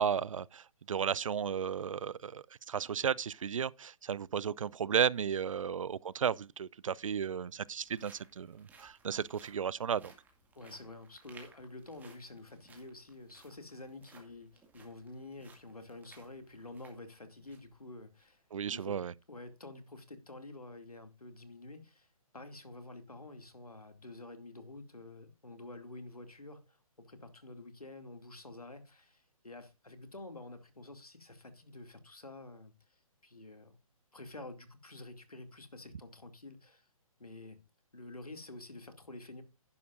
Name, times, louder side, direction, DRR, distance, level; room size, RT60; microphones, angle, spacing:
voice 1, 0.0-10.1 18.5-19.1, right 7 dB, 60° right, 0.5 m, -34 dB
sound 1, 7.3-17.7 18.1-18.2 18.8-19.0, right 4 dB, 10° right, 2.2 m, -61 dB
voice 2, 10.5-19.0 19.3-22.1 22.3-33.8 34.1-36.9 37.2-37.6 37.9-39.4, left 2 dB, 90° left, 2.5 m, -49 dB
11.5 x 11.0 x 2.5 m
figure-of-eight pair, 135°, 18 cm